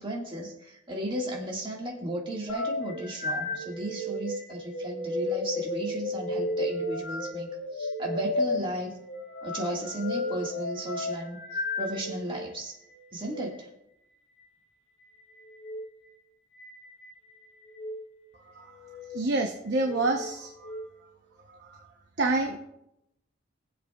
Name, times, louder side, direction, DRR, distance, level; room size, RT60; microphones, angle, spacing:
voice 1, 0.0-9.0 9.4-12.8 13.1-13.7, right 1 dB, 25° right, -2 dB, 1.8 m, -35 dB
sound 1, 2.5-12.4 13.2-13.5 15.5-15.8 16.6-17.1 17.7-18.0 18.7-19.2 19.7-20.8, left 1 dB, 80° left, 2.9 m, -33 dB
voice 2, 19.1-20.8 21.6-21.8 22.2-22.6, right 2 dB, 60° right, 2 dB, 0.8 m, -28 dB
20.0 x 7.6 x 2.3 m, 0.84 s
head